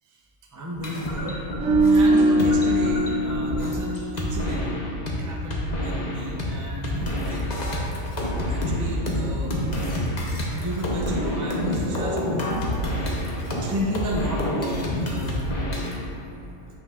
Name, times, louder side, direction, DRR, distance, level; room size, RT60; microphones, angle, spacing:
voice 1, 0.5-1.4 1.9-4.7 5.2-7.4 8.4-9.6 10.5-12.2 12.9-13.3 13.5-15.4, equal, 30° right, -3 dB, 0.3 m, -32 dB
sound 1, 0.8-5.2 5.5-6.5 6.8-16.0, left 1 dB, 40° left, 0.8 m, -28 dB
sound 2, 1.6-4.9 5.2-5.4, right 1 dB, 70° right, 0.9 m, -22 dB
7.8 x 5.6 x 2.4 m, 2.7 s
omnidirectional pair, 1.4 m